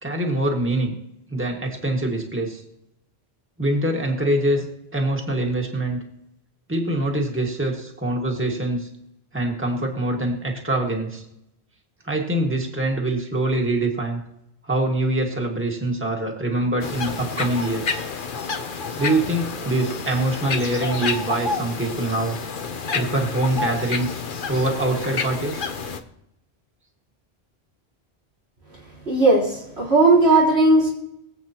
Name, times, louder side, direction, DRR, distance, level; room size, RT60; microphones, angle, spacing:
voice 1, 0.0-1.0 1.3-2.6 3.6-4.7 4.9-6.0 6.7-8.9 9.3-11.2 12.0-14.2 14.6-18.0 18.9-22.4 22.9-24.2 24.5-25.7, right 1 dB, 10° right, 0 dB, 1.8 m, -24 dB
sound 1, 16.8-26.0, left 4 dB, 55° left, 1.0 m, -29 dB
voice 2, 29.1-30.9, right 2 dB, 85° right, -5 dB, 4.1 m, -16 dB
23.5 x 8.1 x 2.9 m, 0.83 s
omnidirectional pair, 1.1 m